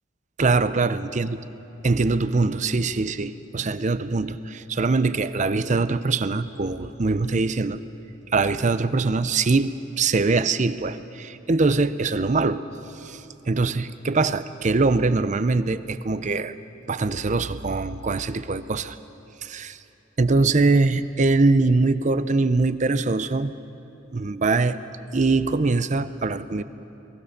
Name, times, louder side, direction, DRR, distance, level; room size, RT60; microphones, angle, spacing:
voice 1, 0.4-1.4 1.8-7.8 8.3-12.6 12.9-16.5 16.9-19.0 19.4-19.8 20.2-23.5 24.1-24.8 25.1-26.6, right 3 dB, 40° right, 13 dB, 0.6 m, -22 dB
22.5 x 19.0 x 6.6 m, 3.0 s
head